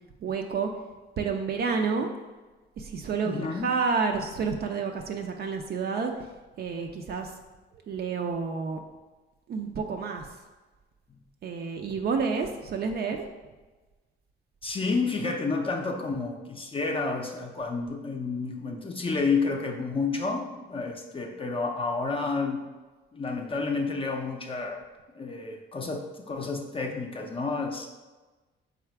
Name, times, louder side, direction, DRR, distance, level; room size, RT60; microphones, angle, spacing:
voice 1, 0.2-0.7 1.2-2.1 2.8-6.1 6.6-7.3 7.9-8.8 9.5-10.3 11.4-13.2, right 5 dB, 50° right, 3 dB, 0.4 m, -29 dB
voice 2, 3.2-3.7 14.6-22.6 23.1-24.8 25.1-27.9, left 4 dB, 25° left, 2 dB, 0.5 m, -30 dB
3.9 x 2.4 x 4.5 m, 1.2 s
cardioid pair, 90°, 20 cm